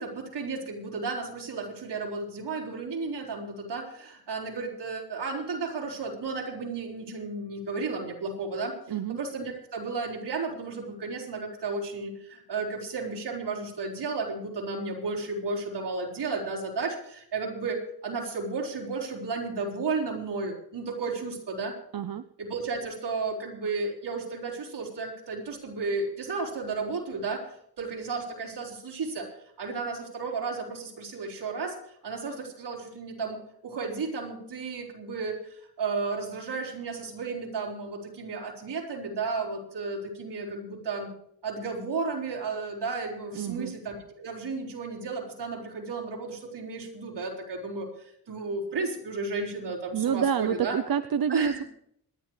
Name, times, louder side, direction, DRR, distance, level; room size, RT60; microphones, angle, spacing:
voice 1, 0.0-21.7 22.4-29.3 29.6-31.8 32.0-41.1 41.4-50.8 51.3-51.6, right 4 dB, 80° right, -3 dB, 4.6 m, -33 dB
voice 2, 21.9-22.2 43.4-43.7 49.9-51.6, right 8 dB, 60° right, 11 dB, 0.6 m, -27 dB
26.5 x 11.5 x 3.2 m, 0.70 s
wide cardioid pair, 100°, 40 cm